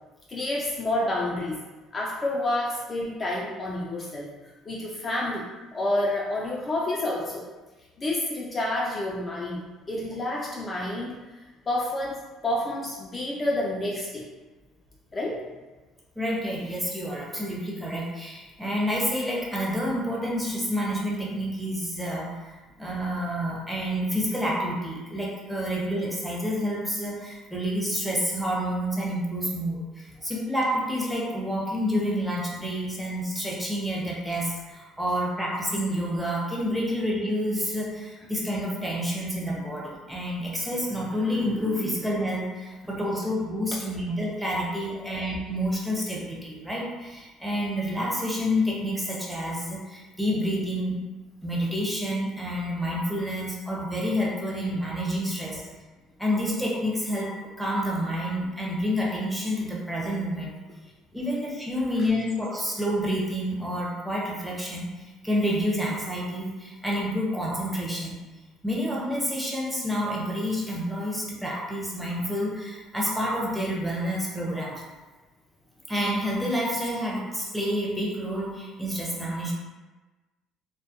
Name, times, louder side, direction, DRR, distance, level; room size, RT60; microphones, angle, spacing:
voice 1, 0.3-1.6 1.9-4.3 4.7-5.5 5.7-7.4 8.0-11.1 11.7-14.3 15.1-15.4 45.0-45.2, left 1 dB, 30° left, -4 dB, 0.4 m, -29 dB
voice 2, 16.2-51.0 51.4-55.6 56.2-60.5 61.1-68.2 68.6-74.8 75.9-79.5, equal, 5° right, -4 dB, 0.7 m, -29 dB
2.2 x 2.1 x 2.7 m, 1.2 s
supercardioid pair, 95°, 0 cm